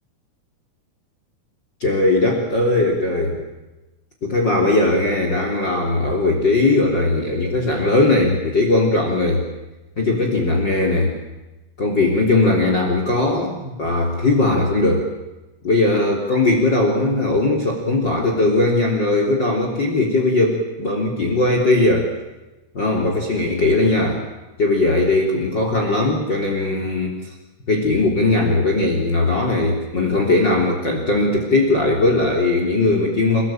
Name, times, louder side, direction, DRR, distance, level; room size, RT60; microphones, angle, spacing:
voice 1, 1.8-3.4 4.2-9.4 10.0-11.1 11.8-15.1 15.6-22.1 22.7-24.2 24.6-27.3 27.7-33.4, left 2 dB, 30° left, 2 dB, 3.7 m, -19 dB
29.5 x 19.5 x 8.9 m, 1.1 s
omnidirectional pair, 4.4 m